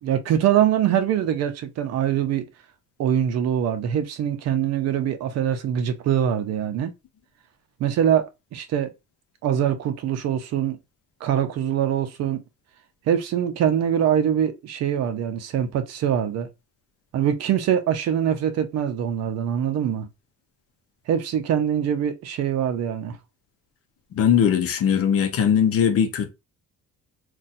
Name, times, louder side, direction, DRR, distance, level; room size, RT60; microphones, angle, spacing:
voice 1, 0.0-2.5 3.0-6.9 7.8-8.9 9.4-10.8 11.2-12.4 13.1-16.5 17.1-20.1 21.1-23.2, right 9 dB, 55° right, 0.6 m, -23 dB
voice 2, 24.1-26.3, left 8 dB, 50° left, 0.7 m, -20 dB
2.6 x 2.3 x 4.0 m
cardioid pair, 175°, 30 cm